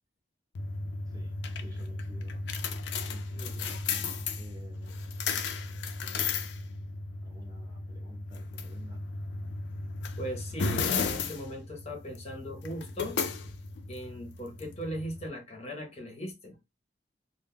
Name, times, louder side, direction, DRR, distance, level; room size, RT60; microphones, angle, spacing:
sound 1, 0.6-15.3, left 4 dB, 80° left, 0.4 m, -35 dB
voice 1, 1.1-2.4 3.0-5.1 7.2-9.0, right 1 dB, 20° right, 0.7 m, -54 dB
voice 2, 10.2-13.2 13.9-16.6, equal, 35° left, 0.6 m, -39 dB
2.1 x 2.0 x 3.4 m
head